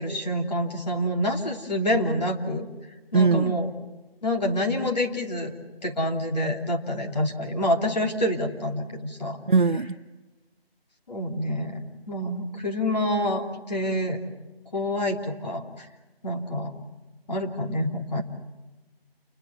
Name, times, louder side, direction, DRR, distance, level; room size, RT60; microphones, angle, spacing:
voice 1, 0.0-2.7 3.1-3.7 4.2-5.5 5.8-9.4 11.1-14.2 14.7-15.9 16.2-16.7 17.3-18.2, equal, 45° left, 2 dB, 3.0 m, -27 dB
voice 2, 3.1-3.6 9.5-9.9, right 4 dB, 55° right, 11 dB, 0.8 m, -21 dB
29.0 x 22.0 x 7.1 m, 1.2 s
figure-of-eight pair, 180°, 31 cm